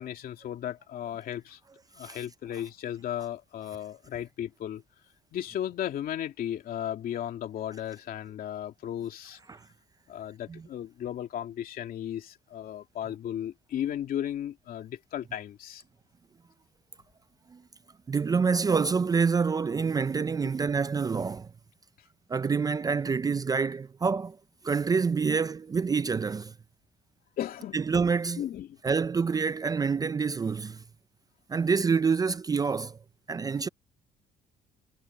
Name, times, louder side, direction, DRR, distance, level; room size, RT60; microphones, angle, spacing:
voice 1, 0.0-1.6 1.9-4.8 5.3-9.4 10.1-15.8 27.4-27.8 28.4-28.8, left 10 dB, 60° left, 2.6 m, -35 dB
voice 2, 18.1-21.5 22.3-24.4 24.6-26.5 27.7-28.4 28.8-30.8 31.5-33.0 33.3-33.7, right 5 dB, 20° right, 0.4 m, -27 dB
cardioid pair, 110°, 17 cm